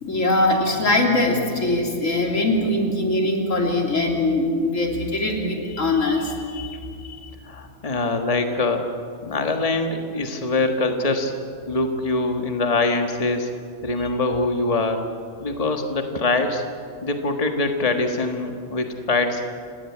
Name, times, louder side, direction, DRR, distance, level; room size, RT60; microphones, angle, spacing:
voice 1, 0.0-7.2 14.0-14.1, left 2 dB, 85° left, 1 dB, 3.5 m, -22 dB
voice 2, 7.4-8.9 9.2-11.3 11.7-13.5 13.8-15.1 15.4-16.6 17.0-19.4, left 2 dB, 30° left, 4 dB, 1.6 m, -23 dB
29.5 x 17.5 x 8.6 m, 2.4 s
omnidirectional pair, 1.3 m